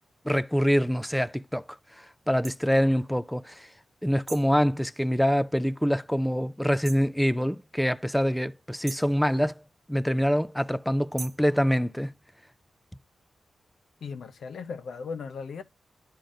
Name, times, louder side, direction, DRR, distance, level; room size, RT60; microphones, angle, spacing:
voice 1, 0.2-3.7 4.0-9.6 9.9-12.1, equal, 5° left, 0.3 m, -25 dB
sound 1, 2.4-2.6 4.3-4.6 6.8-7.1 8.9-9.2 11.2-11.5, right 5 dB, 55° right, 0.5 m, -41 dB
voice 2, 14.0-15.6, left 5 dB, 80° left, 0.7 m, -37 dB
11.5 x 3.8 x 2.5 m
wide cardioid pair, 120°, 0 cm